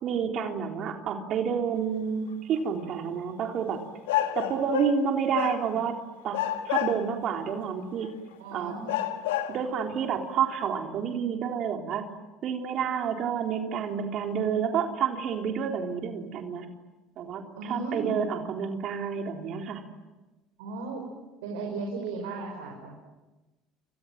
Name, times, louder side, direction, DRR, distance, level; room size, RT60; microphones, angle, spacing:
voice 1, 0.0-3.8 4.4-6.0 6.2-6.4 6.7-8.1 8.5-8.8 9.5-12.1 12.4-16.7 17.2-19.8, right 7 dB, 55° right, 3 dB, 3.8 m, -29 dB
sound 1, 2.6-2.7 4.1-5.1 5.3-6.0 6.3-7.3 8.0-8.1 8.9-9.7, left 12 dB, 90° left, 1.7 m, -29 dB
voice 2, 8.4-9.0 17.6-18.3 20.6-21.1 21.4-23.0, right 3 dB, 85° right, 1 dB, 5.5 m, -35 dB
29.0 x 26.0 x 7.6 m, 1.1 s
hypercardioid pair, 75°, 0 cm